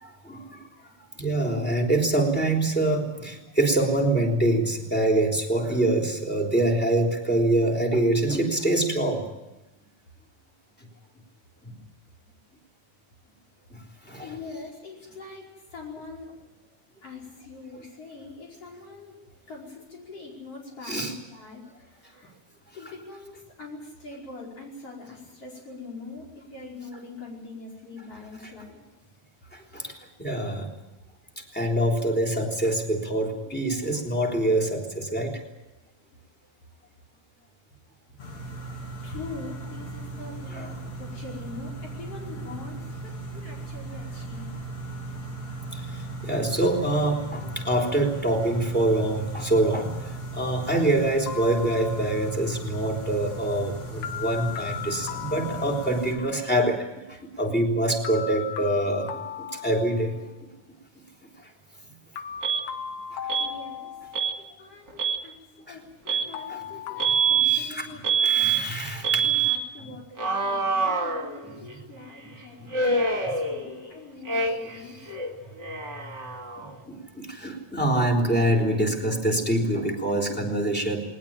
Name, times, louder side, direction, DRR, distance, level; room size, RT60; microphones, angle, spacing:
voice 1, 0.0-0.6 1.2-9.3 14.1-14.3 20.9-21.1 29.7-29.9 30.2-30.7 31.5-35.3 40.5-40.7 46.2-49.9 50.3-56.8 57.2-59.1 59.6-60.2 66.5-66.6 67.5-67.9 68.2-69.2 69.8-69.9 76.6-81.0, right 1 dB, 5° left, 0 dB, 3.2 m, -25 dB
voice 2, 14.2-16.3 17.0-19.2 19.5-22.4 22.7-28.8 39.0-44.5 63.4-64.0 64.6-65.4 65.7-68.6 69.2-75.0, left 3 dB, 50° left, -2 dB, 6.1 m, -43 dB
sound 1, 38.2-56.1, right 2 dB, 70° left, 4.5 m, -37 dB
sound 2, 51.3-52.4 54.0-56.3 58.0-60.4 62.2-64.5 66.3-67.4, left 8 dB, 85° left, 2.6 m, -37 dB
Alarm, 62.4-62.6 63.3-63.5 64.1-64.4 64.9-65.2 66.1-66.3 67.0-67.6 68.0-68.6 69.0-69.6 70.2-71.7 72.7-73.9 74.2-74.8 75.1-76.8, right 5 dB, 40° right, 2.7 m, -25 dB
20.5 x 19.5 x 8.8 m, 0.99 s
omnidirectional pair, 3.3 m